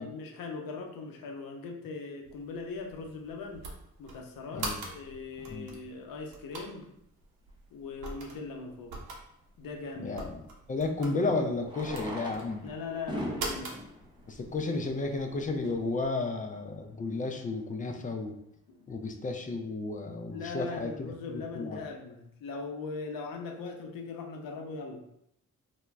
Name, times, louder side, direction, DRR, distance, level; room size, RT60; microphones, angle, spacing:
voice 1, 0.0-3.6 4.0-6.9 7.7-9.0 9.6-10.2 12.6-13.8 18.7-18.9 20.3-25.0, left 4 dB, 55° left, 2 dB, 0.6 m, -40 dB
sound 1, 2.2-16.1, right 3 dB, 60° right, 0.7 m, -44 dB
voice 2, 10.0-10.4 10.7-12.7 14.3-18.3 18.9-21.8, left 3 dB, 20° left, 4 dB, 0.3 m, -33 dB
Fireworks, 10.4-10.5 11.6-15.3 16.1-16.2 16.4-16.5 16.7-16.8 17.3-17.5, equal, 10° right, 0.6 m, -41 dB
2.1 x 2.0 x 3.3 m, 0.77 s
hypercardioid pair, 40°, 41 cm